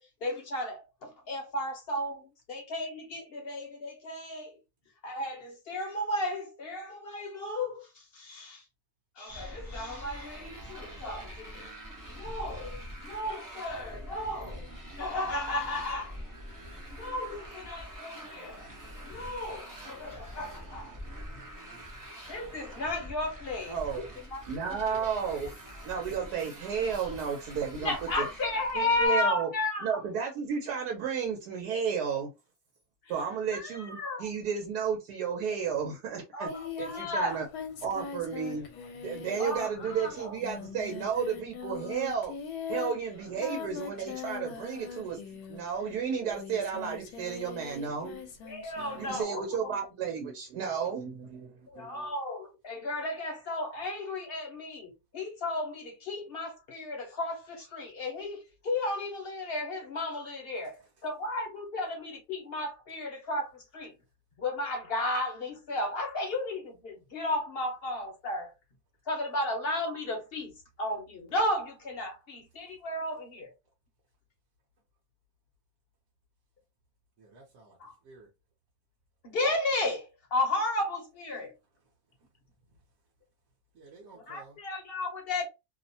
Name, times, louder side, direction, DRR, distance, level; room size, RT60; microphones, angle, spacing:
voice 1, 0.0-4.6 5.0-8.6 9.2-11.7 12.1-14.7 15.0-16.2 16.9-18.7 19.0-21.0 21.3-21.4 22.3-25.0 27.8-30.0 33.0-33.1 33.5-34.3 36.3-37.4 39.4-40.4 48.4-49.7 51.7-63.9 64.4-68.5 69.1-70.5 70.8-73.5 77.8-77.9 79.2-81.5 84.1-85.5, left 1 dB, 55° left, 0.7 m, -34 dB
Motorcycle, 9.3-29.1, equal, 30° right, 0.3 m, -45 dB
voice 2, 23.7-24.1 24.4-25.5 25.8-28.3 28.7-29.5 29.8-32.3 33.1-36.5 36.8-37.4 37.8-38.7 39.0-42.3 42.7-48.3 48.9-52.1, right 6 dB, 85° right, 1.2 m, -33 dB
Singing, 36.5-45.8 46.3-49.2, left 6 dB, 85° left, 1.1 m, -42 dB
voice 3, 77.2-78.3 82.2-82.3 82.7-82.8 83.7-84.6, right 3 dB, 60° right, 1.0 m, -54 dB
2.8 x 2.1 x 2.6 m
omnidirectional pair, 1.6 m